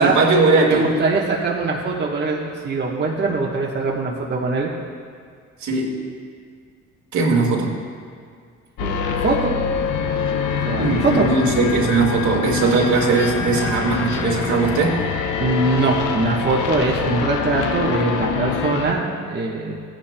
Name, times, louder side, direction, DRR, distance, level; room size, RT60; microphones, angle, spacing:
voice 1, 0.0-0.9 5.6-6.0 7.1-7.8 10.7-15.0, right 3 dB, 70° right, -2 dB, 1.9 m, -19 dB
voice 2, 0.7-4.7 8.8-9.5 10.6-11.2 15.4-19.8, right 3 dB, 35° right, -3 dB, 1.2 m, -22 dB
sound 1, 8.8-18.9, left 7 dB, 80° left, 0.8 m, -25 dB
15.0 x 10.5 x 2.2 m, 2.1 s
cardioid pair, 90°, 30 cm